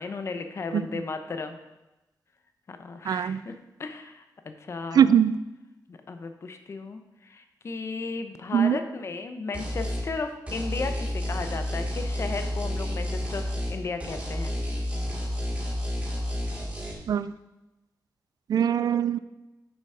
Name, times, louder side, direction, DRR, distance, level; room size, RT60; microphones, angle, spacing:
voice 1, 0.0-1.6 2.7-5.1 5.9-14.5, left 4 dB, 40° left, 7 dB, 0.7 m, -35 dB
voice 2, 3.1-3.4 4.9-5.4 8.5-8.8 17.1-17.3 18.5-19.2, right 8 dB, 65° right, 15 dB, 0.3 m, -21 dB
sound 1, 9.5-10.1 10.5-13.7 14.0-16.9, left 1 dB, 20° right, 2.2 m, -30 dB
6.8 x 6.7 x 4.9 m, 1.0 s
wide cardioid pair, 175°, 7 cm